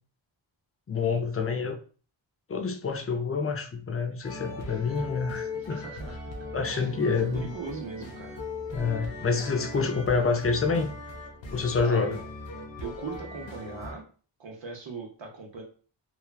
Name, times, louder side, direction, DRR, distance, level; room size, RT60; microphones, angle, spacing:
voice 1, 0.9-1.8 2.5-5.8 6.5-7.5 8.7-10.9 11.5-12.2, left 4 dB, 30° left, 0.5 m, -27 dB
sound 1, 4.2-13.9, left 3 dB, 65° left, 0.8 m, -39 dB
voice 2, 4.7-5.1 5.5-6.2 6.5-8.3 11.8-12.2 12.8-14.1 14.4-15.6, right 4 dB, 60° right, 0.8 m, -40 dB
3.2 x 2.2 x 2.2 m
cardioid pair, 50°, 49 cm